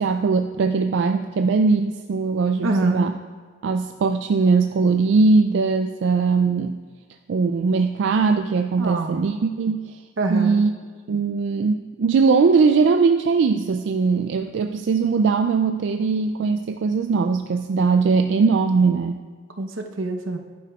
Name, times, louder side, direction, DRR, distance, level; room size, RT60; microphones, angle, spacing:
voice 1, 0.0-3.1 3.6-6.8 7.3-10.0 10.3-10.7 11.1-19.2, right 4 dB, 65° right, 6 dB, 0.3 m, -20 dB
voice 2, 2.6-3.1 8.8-9.3 10.2-10.6 19.6-20.4, right 2 dB, 85° right, 4 dB, 0.8 m, -26 dB
11.5 x 9.3 x 2.4 m, 1.5 s
head